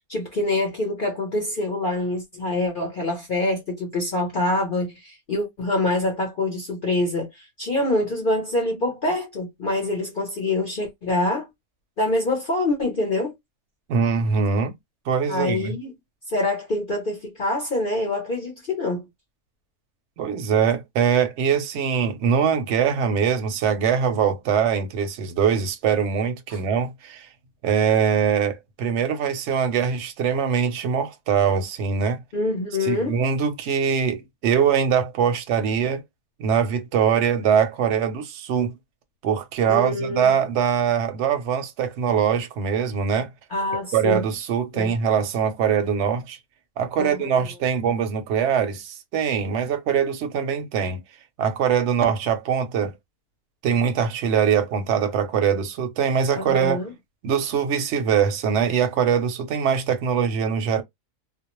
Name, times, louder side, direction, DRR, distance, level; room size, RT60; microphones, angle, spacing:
voice 1, 0.1-11.5 12.0-13.3 15.3-15.9 16.3-19.1 26.5-26.6 32.3-33.2 39.7-40.3 43.5-44.2 44.7-44.9 47.0-47.3 56.4-56.9, left 2 dB, 45° left, 0.7 m, -25 dB
voice 2, 13.9-14.7 15.1-15.7 20.2-27.3 27.6-32.2 32.8-36.0 36.4-38.7 39.2-43.3 43.9-46.4 46.8-51.0 51.4-52.9 53.6-56.8 57.2-60.8, right 7 dB, 60° right, 0.8 m, -22 dB
2.5 x 2.0 x 2.9 m
omnidirectional pair, 1.6 m